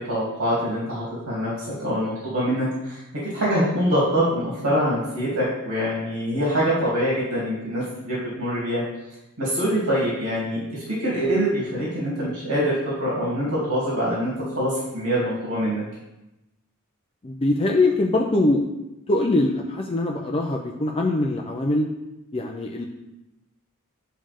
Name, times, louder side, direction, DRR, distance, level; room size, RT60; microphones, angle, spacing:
voice 1, 0.1-1.5 1.8-3.0 3.3-8.8 9.4-15.8, equal, 80° right, -7 dB, 3.1 m, -24 dB
voice 2, 17.2-18.6 19.1-21.9 22.3-22.9, left 2 dB, 25° left, 0 dB, 0.6 m, -22 dB
9.9 x 5.3 x 3.7 m, 0.94 s
head